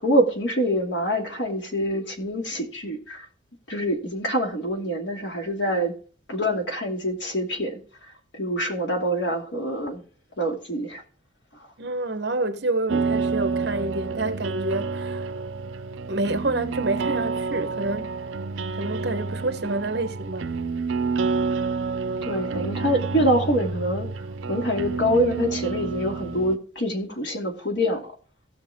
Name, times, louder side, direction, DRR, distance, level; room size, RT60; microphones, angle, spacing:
voice 1, 0.0-3.3 3.7-5.9 6.3-7.8 8.3-10.0 10.4-11.0 22.2-24.1 24.5-28.1, equal, 65° left, 2.6 m, -25 dB
voice 2, 11.8-15.3 16.1-18.1 18.7-20.5, right 2 dB, 55° right, 1.1 m, -28 dB
sound 1, 12.9-26.6, right 4 dB, 80° right, 0.6 m, -29 dB
17.0 x 5.9 x 3.6 m
head